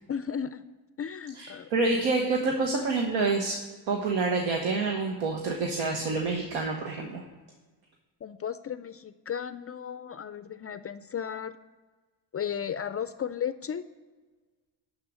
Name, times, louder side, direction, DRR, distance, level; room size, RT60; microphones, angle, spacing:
voice 1, 0.1-0.6 1.0-1.7 8.2-11.6 12.3-13.8, left 8 dB, 30° left, 12 dB, 0.4 m, -34 dB
voice 2, 1.4-3.6 3.9-7.2, right 3 dB, 85° right, 1 dB, 1.0 m, -27 dB
11.0 x 3.7 x 6.1 m, 1.3 s
supercardioid pair, 65°, 48 cm